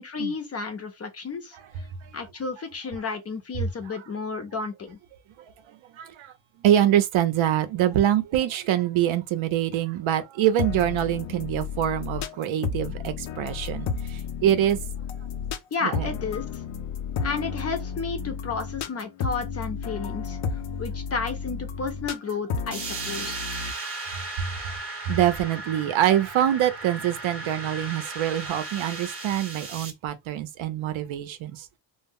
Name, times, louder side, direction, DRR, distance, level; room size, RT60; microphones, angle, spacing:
voice 1, 0.0-1.6 2.1-5.0 15.7-16.6 17.2-23.5, left 4 dB, 35° left, 0.4 m, -32 dB
voice 2, 5.9-6.3 6.6-14.9 15.8-16.1 25.1-31.8, right 11 dB, 85° right, 0.6 m, -25 dB
sound 1, 10.6-23.7, left 6 dB, 85° left, 0.5 m, -32 dB
sound 2, 22.7-29.9, right 3 dB, 30° right, 0.7 m, -36 dB
2.0 x 2.0 x 3.5 m
wide cardioid pair, 165°, 46 cm